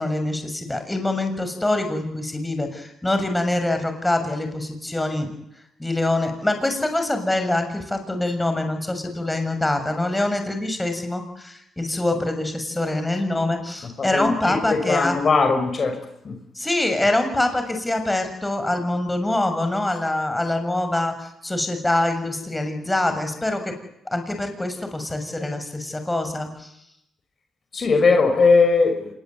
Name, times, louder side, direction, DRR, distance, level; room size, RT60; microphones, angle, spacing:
voice 1, 0.0-5.3 5.8-15.2 16.6-23.8 24.1-26.7, left 1 dB, 10° left, 6 dB, 6.9 m, -24 dB
voice 2, 14.0-16.0 16.2-16.4 27.7-29.1, left 4 dB, 40° left, 7 dB, 5.9 m, -19 dB
26.5 x 22.0 x 9.6 m, 0.79 s
cardioid pair, 90°, 0 cm